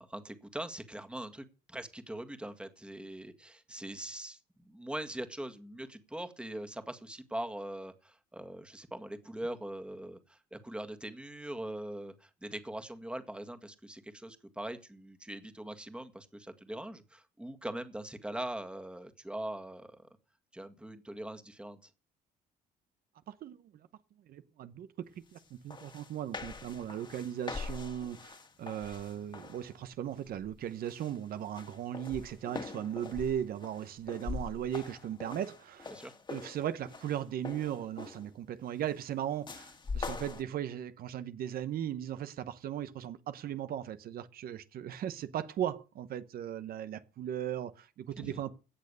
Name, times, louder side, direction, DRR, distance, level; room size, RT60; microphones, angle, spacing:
voice 1, 0.0-20.1 20.5-21.9 35.9-36.1 48.2-48.4, right 1 dB, 5° right, 1.8 m, -42 dB
voice 2, 23.3-23.7 24.3-24.9 25.3-35.9 36.3-48.6, right 10 dB, 60° right, 1.1 m, -37 dB
sound 1, 25.4-25.5 25.7-29.7 30.2-30.5 30.9-38.3 39.5-40.4, left 4 dB, 25° left, 2.0 m, -43 dB
17.0 x 6.6 x 6.8 m
cardioid pair, 110°, 17 cm